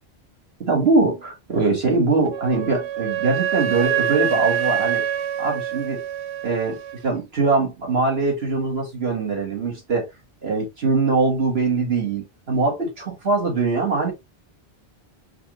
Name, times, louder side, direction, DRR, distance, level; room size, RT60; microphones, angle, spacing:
voice 1, 0.6-5.0 5.4-6.0 6.4-10.1 10.4-14.1, right 3 dB, 70° right, 2.2 m, -22 dB
Wind instrument woodwind instrument, 2.3-7.0, right 9 dB, 90° right, 0.9 m, -25 dB
4.9 x 2.6 x 3.0 m
omnidirectional pair, 1.1 m